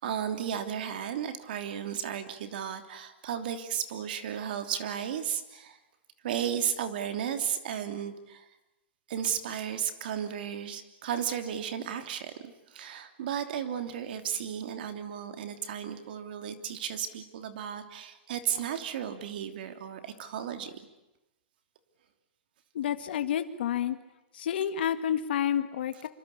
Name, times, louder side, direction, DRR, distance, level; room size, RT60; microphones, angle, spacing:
voice 1, 0.0-5.8 6.2-8.5 9.1-20.8, right 9 dB, 55° right, 8 dB, 3.0 m, -34 dB
voice 2, 22.7-24.0 24.3-26.1, left 9 dB, 65° left, 9 dB, 1.8 m, -29 dB
26.5 x 26.0 x 8.5 m, 0.98 s
supercardioid pair, 170°, 6 cm